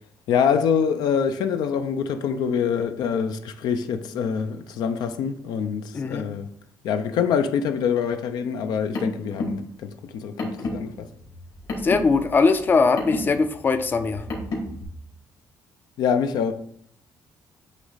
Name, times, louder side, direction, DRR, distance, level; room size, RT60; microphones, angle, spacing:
voice 1, 0.3-6.5 6.8-11.1 16.0-16.5, left 7 dB, 80° left, 0.5 m, -25 dB
voice 2, 5.9-6.3 11.8-14.3, left 4 dB, 30° left, 0.5 m, -21 dB
Car, 8.6-14.8, left 2 dB, 65° left, 2.2 m, -33 dB
8.1 x 3.1 x 4.0 m
cardioid pair, 125°, 7 cm